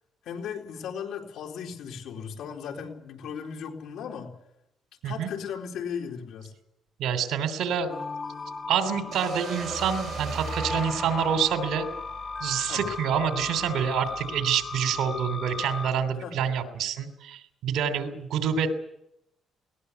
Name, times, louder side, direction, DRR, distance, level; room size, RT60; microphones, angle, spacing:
voice 1, 0.2-4.3 5.0-6.5 12.7-12.8 16.2-16.4, left 7 dB, 80° left, 2 dB, 4.0 m, -36 dB
voice 2, 7.0-7.9 8.7-11.9 12.4-18.7, right 7 dB, 80° right, 8 dB, 3.2 m, -27 dB
sound 1, 7.9-15.9, left 4 dB, 30° left, 3.1 m, -36 dB
sound 2, 9.1-13.0, right 4 dB, 40° right, 7.4 m, -38 dB
20.5 x 19.5 x 8.3 m, 0.82 s
cardioid pair, 115°, 0 cm